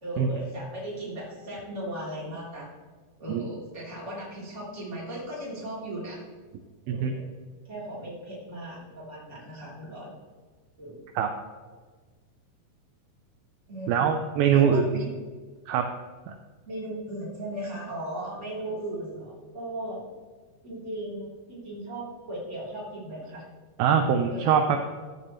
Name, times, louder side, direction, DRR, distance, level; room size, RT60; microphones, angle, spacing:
voice 1, 0.0-2.7 3.2-6.2 6.8-7.3 7.6-10.1 10.8-11.0 13.7-14.0 14.5-15.1 16.6-20.0 20.6-23.4 24.3-24.6, right 1 dB, 20° right, -6 dB, 3.2 m, -37 dB
voice 2, 13.9-14.8 15.7-15.9 23.8-24.8, right 7 dB, 80° right, 5 dB, 2.2 m, -22 dB
14.0 x 8.8 x 3.1 m, 1.4 s
omnidirectional pair, 4.9 m